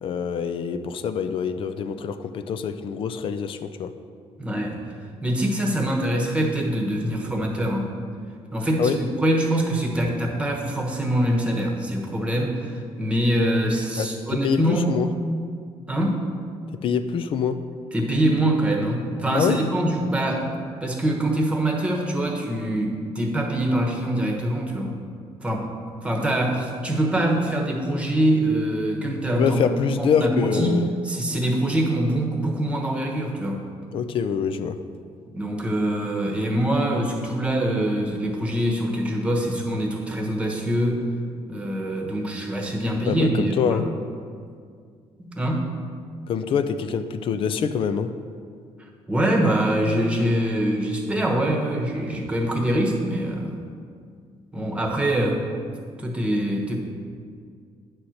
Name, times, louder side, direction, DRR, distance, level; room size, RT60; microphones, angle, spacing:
voice 1, 0.0-3.9 8.8-9.0 14.0-15.1 16.7-17.6 19.3-19.6 29.4-30.9 33.9-34.8 43.1-43.9 46.3-48.1, left 7 dB, 55° left, 10 dB, 0.5 m, -25 dB
voice 2, 4.4-4.8 5.2-7.9 8.5-14.9 15.9-16.2 17.9-20.5 20.8-25.0 25.4-25.7 26.0-29.6 29.9-30.8 31.0-33.6 35.3-41.1 41.5-43.8 45.2-45.7 49.1-53.6 54.5-55.4 56.0-56.8, right 1 dB, 10° right, 0 dB, 1.2 m, -24 dB
9.8 x 4.4 x 6.4 m, 2.1 s
cardioid pair, 145°, 11 cm